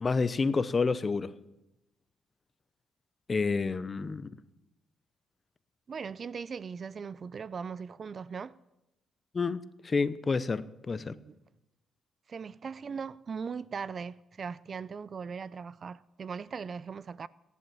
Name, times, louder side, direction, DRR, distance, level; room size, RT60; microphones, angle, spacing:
voice 1, 0.0-1.3 3.3-4.3 9.3-11.1, left 4 dB, 30° left, 0.8 m, -29 dB
voice 2, 5.9-8.6 10.9-11.4 12.3-17.3, right 6 dB, 45° right, 0.5 m, -39 dB
18.0 x 11.0 x 7.0 m
cardioid pair, 90°, 0 cm